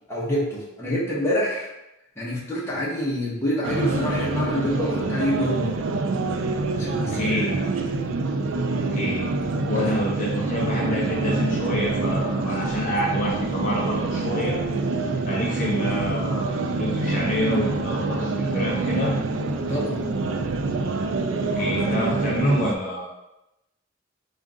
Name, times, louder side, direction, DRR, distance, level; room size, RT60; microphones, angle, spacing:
voice 1, 0.1-1.7 2.2-5.7 6.7-7.4 9.7-9.9 19.7-20.1, equal, 15° left, -6 dB, 0.9 m, -27 dB
sound 1, 3.6-22.7, right 3 dB, 70° right, 0.4 m, -26 dB
voice 2, 7.1-7.6 8.7-9.3 9.6-14.5 15.2-19.1 21.5-23.1, equal, 40° left, -5 dB, 0.7 m, -27 dB
3.6 x 2.5 x 3.6 m, 0.91 s
head